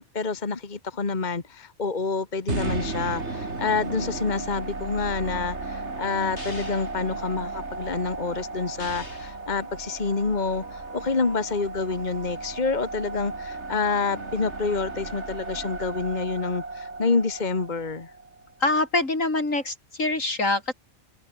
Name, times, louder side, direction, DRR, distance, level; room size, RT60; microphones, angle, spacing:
voice 1, 0.0-18.1, left 4 dB, 35° left, 1.7 m, -28 dB
sound 1, 2.5-18.6, right 3 dB, 55° right, 3.5 m, -35 dB
sound 2, 6.4-7.0 8.8-9.4, left 1 dB, 55° left, 6.7 m, -40 dB
voice 2, 18.6-20.7, left 2 dB, 75° left, 5.2 m, -24 dB
omnidirectional pair, 1.4 m